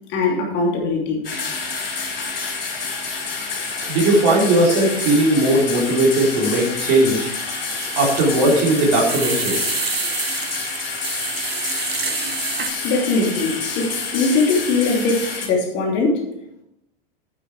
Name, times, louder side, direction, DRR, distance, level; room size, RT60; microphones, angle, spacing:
voice 1, 0.1-1.2 12.8-16.2, left 3 dB, 35° left, -1 dB, 2.9 m, -21 dB
sound 1, 1.2-15.5, left 4 dB, 65° left, 4.1 m, -28 dB
sound 2, 2.2-3.2 3.5-12.7, right 4 dB, 80° right, 1.1 m, -30 dB
voice 2, 3.9-7.3 8.0-9.6, right 1 dB, 45° right, -2 dB, 4.1 m, -18 dB
9.5 x 8.5 x 4.8 m, 0.81 s
figure-of-eight pair, 90°, 30 cm